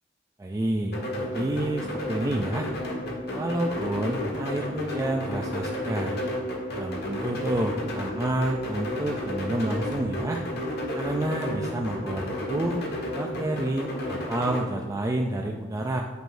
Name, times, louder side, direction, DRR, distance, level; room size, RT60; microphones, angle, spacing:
voice 1, 0.4-2.7 3.3-6.2 6.7-10.4 10.9-12.8 13.1-16.0, right 1 dB, 15° right, 2 dB, 0.4 m, -29 dB
sound 1, 0.9-14.6, left 1 dB, 60° left, 1.4 m, -32 dB
sound 2, 1.4-3.2 3.7-6.3 6.7-9.2 9.7-12.2 12.7-13.3, equal, 30° left, 1.0 m, -47 dB
9.2 x 6.5 x 2.6 m, 1.3 s
head